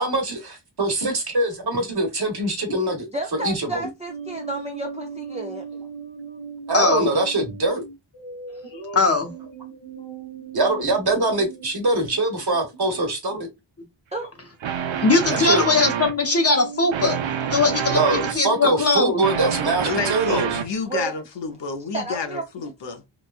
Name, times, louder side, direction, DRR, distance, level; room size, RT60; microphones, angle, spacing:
voice 1, 0.0-3.1 3.3-3.9 6.7-7.8 10.5-13.5 15.3-15.6 17.9-20.6, right 2 dB, 55° right, 1.1 m, -23 dB
voice 2, 3.1-5.6 14.1-14.3 20.9-21.1 21.9-22.4, right 2 dB, 15° right, 0.4 m, -31 dB
sound 1, 4.1-13.5 14.2-14.5 14.9-20.5, right 5 dB, 85° left, 1.1 m, -37 dB
voice 3, 6.7-7.0 8.9-9.3 15.0-17.2 17.5-19.2, left 3 dB, 30° left, 0.7 m, -20 dB
sound 2, 14.6-16.3 16.9-18.4 19.0-20.8, right 8 dB, 75° right, 0.6 m, -27 dB
voice 4, 19.9-23.0, left 4 dB, 65° left, 0.7 m, -29 dB
3.0 x 2.2 x 2.3 m
wide cardioid pair, 85°, 46 cm